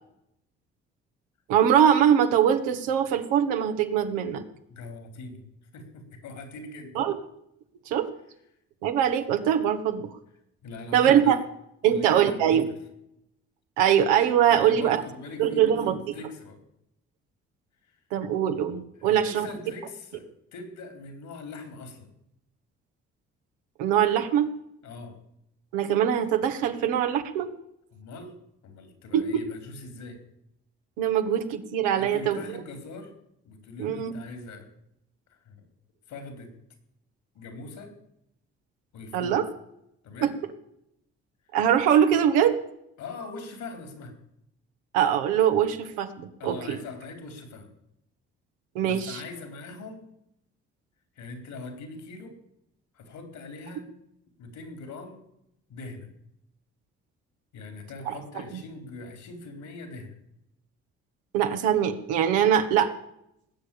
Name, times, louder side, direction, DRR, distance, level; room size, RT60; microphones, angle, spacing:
voice 1, 1.5-4.4 7.0-7.2 7.9-8.1 8.8-10.1 10.9-11.4 11.8-12.6 13.8-15.0 15.4-16.0 18.1-19.5 23.8-24.5 25.7-27.5 29.1-29.4 31.0-32.4 33.8-34.1 39.1-39.4 41.5-42.6 44.9-46.8 48.8-49.2 58.1-58.2 61.3-62.9, right 9 dB, 85° right, 6 dB, 1.6 m, -22 dB
voice 2, 4.7-5.4 5.7-7.0 10.6-11.4 11.8-12.8 14.5-16.6 17.8-18.0 19.0-22.1 24.8-25.2 27.9-28.4 28.6-30.2 31.9-33.1 33.4-34.7 35.4-35.6 36.1-36.6 37.3-38.0 38.9-39.4 40.0-40.4 43.0-44.1 46.4-47.7 48.8-50.1 51.2-52.4 52.9-53.9 54.4-55.2 55.7-56.1 57.5-60.2, left 3 dB, 70° left, 7 dB, 4.4 m, -41 dB
19.0 x 8.0 x 8.7 m, 0.77 s
hypercardioid pair, 55°, 31 cm